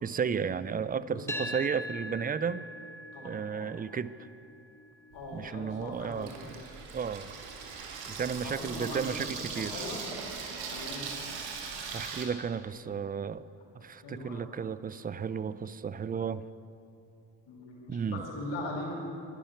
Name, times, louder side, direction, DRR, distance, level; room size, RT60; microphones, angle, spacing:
voice 1, 0.0-2.7 3.2-4.1 5.3-6.5 6.9-7.3 8.1-9.8 10.5-10.6 11.9-13.4 13.7-16.4 17.9-18.2, right 6 dB, 20° right, 16 dB, 0.4 m, -33 dB
voice 2, 0.9-1.4 3.1-3.7 5.1-6.6 8.4-9.2 9.6-10.0 10.7-11.0 14.0-14.5 17.5-19.0, left 2 dB, 80° left, -1 dB, 2.7 m, -40 dB
sound 1, 1.3-9.5, equal, 5° left, 1.4 m, -44 dB
Water tap faucet / Sink (filling or washing), 5.1-12.3, right 5 dB, 85° right, 1.4 m, -40 dB
10.5 x 10.5 x 5.8 m, 2.8 s
supercardioid pair, 55°, 45 cm